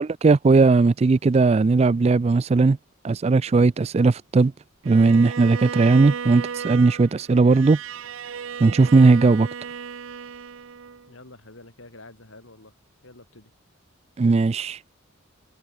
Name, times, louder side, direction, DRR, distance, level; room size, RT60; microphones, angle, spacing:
voice 1, 0.0-2.8 3.0-4.5 4.9-7.8 8.6-9.5 14.2-14.8, right 3 dB, 30° right, 0.3 m, -17 dB
Bowed string instrument, 4.8-11.1, right 6 dB, 70° right, 0.6 m, -35 dB
voice 2, 11.1-12.7 13.0-13.5, left 2 dB, 75° left, 4.2 m, -47 dB
head